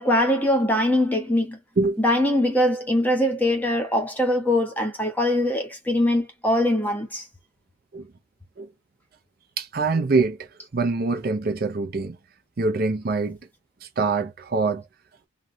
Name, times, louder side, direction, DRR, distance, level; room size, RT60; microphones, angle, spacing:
voice 1, 0.0-1.6 2.0-7.2, left 1 dB, 10° left, 0.8 m, -22 dB
voice 2, 9.6-12.2 12.6-13.4 13.8-14.8, right 3 dB, 45° right, 0.5 m, -24 dB
3.0 x 2.3 x 2.5 m
head